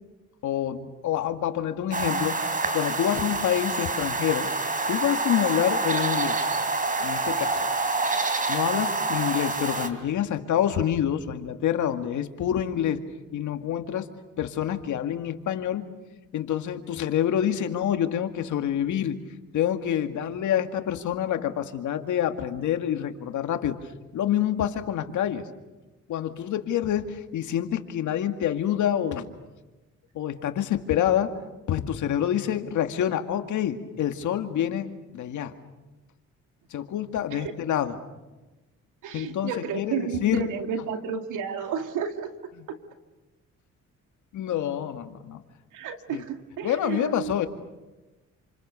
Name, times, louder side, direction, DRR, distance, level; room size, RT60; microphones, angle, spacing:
voice 1, 0.4-2.4 2.7-4.5 4.9-6.4 7.0-7.7 8.5-13.0 13.3-14.1 14.4-15.8 16.3-19.2 19.5-23.8 24.1-25.4 26.1-29.3 30.1-31.3 31.7-35.5 36.7-38.0 39.1-40.5 44.3-45.4 46.1-46.2 46.6-47.5, left 10 dB, 75° left, 7 dB, 2.2 m, -27 dB
sound 1, 1.9-9.9, right 3 dB, 25° right, 3.5 m, -27 dB
voice 2, 39.0-42.3 42.7-42.8 45.7-47.3, right 6 dB, 90° right, 6 dB, 2.5 m, -32 dB
29.0 x 27.5 x 6.9 m, 1.1 s
cardioid pair, 90°, 30 cm